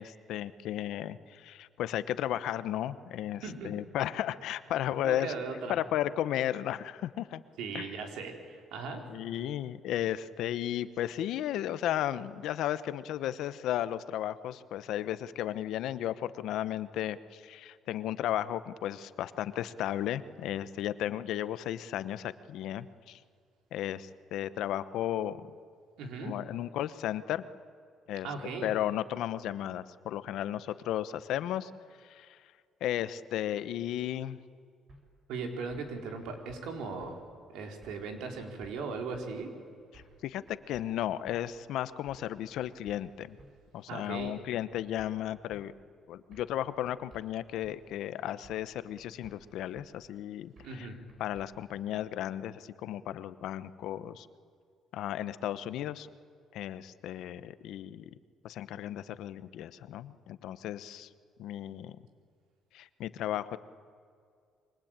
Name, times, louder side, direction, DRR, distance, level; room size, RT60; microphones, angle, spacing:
voice 1, 0.0-5.3 5.7-7.4 7.7-7.9 9.1-23.2 23.7-25.4 26.2-27.5 28.1-28.3 28.6-31.7 32.0-32.4 32.8-34.4 39.9-43.4 43.7-45.7 46.1-50.9 51.2-54.3 54.9-56.1 56.5-58.0 58.4-61.1 61.4-62.0 62.7-63.6, left 12 dB, 80° left, 13 dB, 1.0 m, -34 dB
voice 2, 3.4-3.7 5.0-5.7 7.6-9.0 26.0-26.3 28.2-28.7 35.3-37.2 37.5-39.5 43.9-44.3 50.6-51.0, right 4 dB, 85° right, 3 dB, 4.1 m, -38 dB
sound 1, 34.9-35.0 35.7-35.9 36.2-36.6 37.0-37.1 37.8-38.1 38.3-38.7 39.1-39.3 39.9-40.2 40.5-40.9 41.3-41.4 42.1-42.3 42.6-43.0 43.4-43.5 44.2-44.5 44.7-45.1 45.5-45.6 46.3-46.6 46.8-47.2 47.6-47.8 48.4-48.7 49.0-49.4 49.8-49.9 50.6-50.8 51.1-51.5, right 2 dB, 45° right, 5.8 m, -56 dB
27.5 x 23.5 x 9.0 m, 2.2 s
cardioid pair, 115°, 0 cm